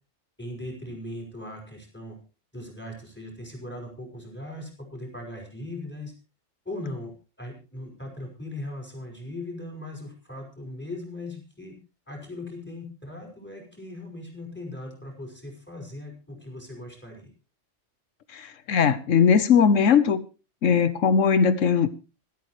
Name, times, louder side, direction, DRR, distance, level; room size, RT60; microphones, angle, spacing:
voice 1, 0.4-2.2 2.5-6.1 6.6-11.8 12.1-17.3, left 1 dB, 10° left, 5.1 m, -39 dB
voice 2, 18.3-20.2 20.6-21.9, left 6 dB, 85° left, 1.3 m, -20 dB
26.0 x 8.7 x 3.1 m
omnidirectional pair, 1.3 m